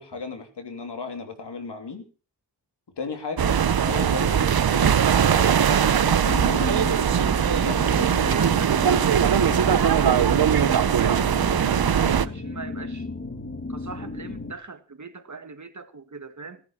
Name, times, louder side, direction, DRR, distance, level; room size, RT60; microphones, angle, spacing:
voice 1, 0.0-2.0 3.0-8.2, left 4 dB, 80° left, 3.2 m, -36 dB
sound 1, 3.4-12.3, right 8 dB, 60° right, 0.9 m, -20 dB
sound 2, 6.2-14.5, left 3 dB, 30° left, 1.6 m, -35 dB
voice 2, 8.2-13.1 13.7-16.6, right 4 dB, 45° right, 1.9 m, -40 dB
17.5 x 10.5 x 5.6 m
wide cardioid pair, 75°, 41 cm